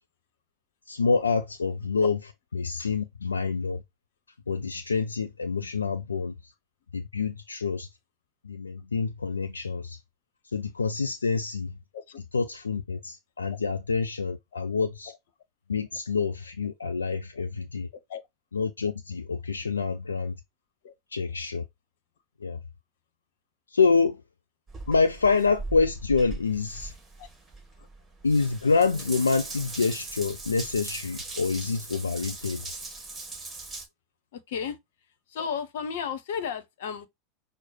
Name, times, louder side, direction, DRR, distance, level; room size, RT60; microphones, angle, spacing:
voice 1, 0.9-2.2 2.5-3.8 4.5-6.5 6.9-7.9 8.4-10.0 10.5-11.8 12.3-15.1 15.7-17.9 18.5-20.4 21.1-21.6 22.4-22.6 23.7-24.2 24.9-26.9 28.2-32.7, left 4 dB, 80° left, 0.4 m, -27 dB
voice 2, 14.5-15.2 17.1-17.2 17.9-18.2 20.8-20.9 27.2-27.3 27.8-27.9 34.3-34.8 35.3-37.1, left 7 dB, 65° left, 0.8 m, -35 dB
Water tap faucet / Bathtub (filling or washing) / Drip, 24.7-33.9, right 3 dB, 15° right, 1.5 m, -40 dB
6.1 x 2.1 x 4.1 m
figure-of-eight pair, 80°, 0 cm